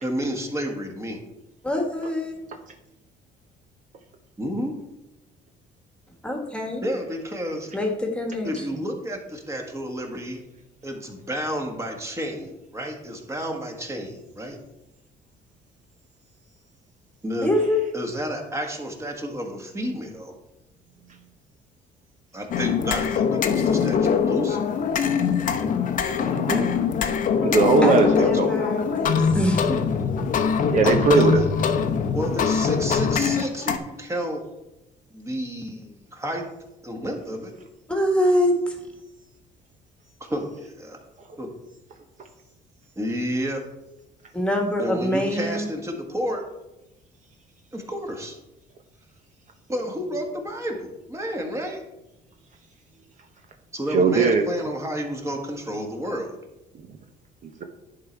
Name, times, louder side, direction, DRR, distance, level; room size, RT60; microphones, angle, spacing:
voice 1, 0.0-1.2 4.4-4.7 6.8-7.7 8.4-10.4 10.8-14.6 17.2-17.5 17.9-20.3 22.3-24.9 28.2-28.4 30.8-31.4 32.1-34.4 35.1-36.5 36.8-37.5 40.3-41.0 41.4-41.5 42.9-43.6 44.8-46.4 47.7-48.4 49.7-51.8 53.7-56.4, equal, 15° right, 2 dB, 1.5 m, -31 dB
voice 2, 1.6-2.4 6.2-6.8 7.7-8.8 17.4-17.9 27.8-29.8 37.9-38.8 44.3-45.7, left 1 dB, 5° left, 2 dB, 1.5 m, -24 dB
sound 1, 22.5-33.8, left 6 dB, 50° left, 0.8 m, -23 dB
voice 3, 26.2-26.7 27.4-28.1 28.4-28.5 29.2-29.3 30.7-31.4 53.9-54.4, right 4 dB, 45° right, 4 dB, 0.8 m, -19 dB
10.5 x 3.9 x 4.5 m, 0.95 s
cardioid pair, 110°, 17 cm